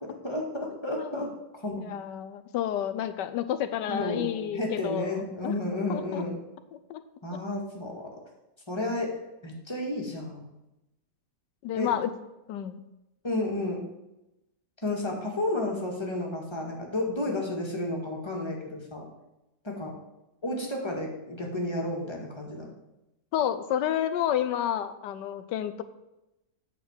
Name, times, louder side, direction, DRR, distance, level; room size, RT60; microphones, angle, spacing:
voice 1, 0.0-1.3 1.6-1.9 3.9-6.3 7.2-8.0 8.7-9.1 9.4-10.5 11.7-11.9 13.2-13.8 14.8-19.0 19.6-19.9 20.4-22.7, left 1 dB, 15° left, -1 dB, 1.7 m, -32 dB
voice 2, 1.0-1.3 1.8-5.6 5.9-6.2 6.9-7.0 11.6-12.1 12.5-12.8 23.3-25.8, left 10 dB, 85° left, 12 dB, 1.3 m, -30 dB
9.5 x 4.3 x 7.2 m, 0.93 s
omnidirectional pair, 1.9 m